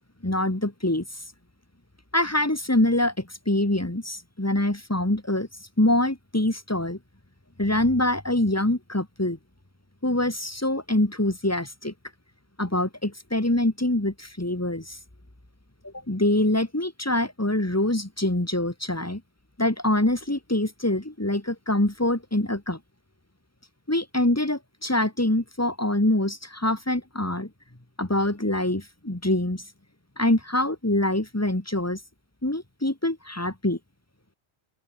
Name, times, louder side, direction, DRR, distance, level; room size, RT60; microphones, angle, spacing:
voice 1, 0.2-1.1 2.1-5.5 5.8-7.0 7.6-9.4 10.0-11.9 12.6-15.0 15.8-19.2 19.6-22.8 23.9-27.5 28.0-29.7 30.2-32.0 32.4-33.8, left 1 dB, 15° left, 2.2 m, -25 dB
open air
omnidirectional pair, 1.1 m